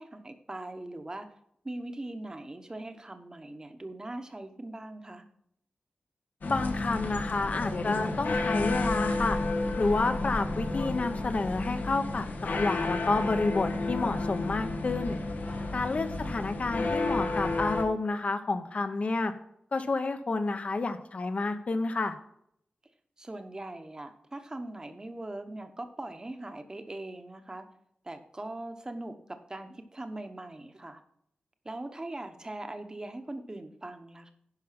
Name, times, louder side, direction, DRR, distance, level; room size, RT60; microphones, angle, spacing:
voice 1, 0.0-1.3 1.6-5.2 15.5-16.1 23.2-27.7 28.0-31.0 31.6-34.3, right 2 dB, 25° right, 8 dB, 1.0 m, -41 dB
sound 1, 6.4-17.8, left 2 dB, 85° left, 1.4 m, -31 dB
voice 2, 6.4-9.4 9.8-15.2 15.7-19.3 19.7-22.1, left 3 dB, 50° left, 8 dB, 0.9 m, -29 dB
10.5 x 5.6 x 5.8 m, 0.71 s
wide cardioid pair, 130°, 3 cm